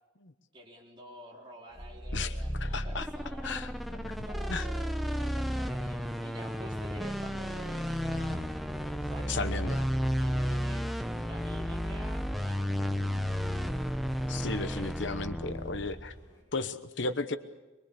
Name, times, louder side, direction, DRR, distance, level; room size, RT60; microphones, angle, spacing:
voice 1, 0.5-3.5 4.2-8.5 9.0-9.7 10.2-10.9 11.3-12.9 13.7-13.9, right 1 dB, 25° right, -2 dB, 4.0 m, -49 dB
sound 1, 1.7-16.4, left 1 dB, 15° left, 7.3 m, -61 dB
sound 2, 1.8-16.3, equal, ahead, 0.9 m, -33 dB
voice 2, 2.1-3.1 3.4-4.7 9.2-9.8 14.3-16.1 16.5-17.4, left 3 dB, 65° left, 10 dB, 1.0 m, -35 dB
23.5 x 23.0 x 6.9 m, 1.1 s
head